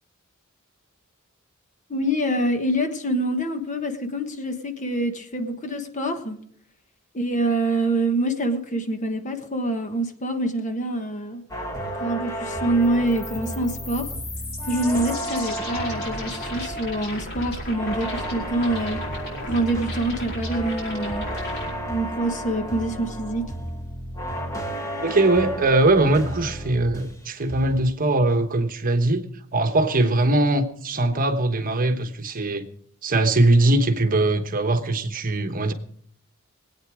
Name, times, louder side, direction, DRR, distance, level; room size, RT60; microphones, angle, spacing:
voice 1, 1.9-6.4 7.1-11.4 12.0-14.1 14.7-19.0 19.4-21.3 21.8-23.5, right 1 dB, 35° left, 1.3 m, -25 dB
sound 1, 11.5-27.2 27.5-27.9, equal, 15° left, 1.8 m, -32 dB
sound 2, 12.8-21.7, left 1 dB, 50° left, 4.9 m, -36 dB
voice 2, 25.0-29.2 29.5-32.7 33.0-35.7, right 2 dB, 40° right, 1.1 m, -21 dB
21.0 x 8.9 x 4.9 m
head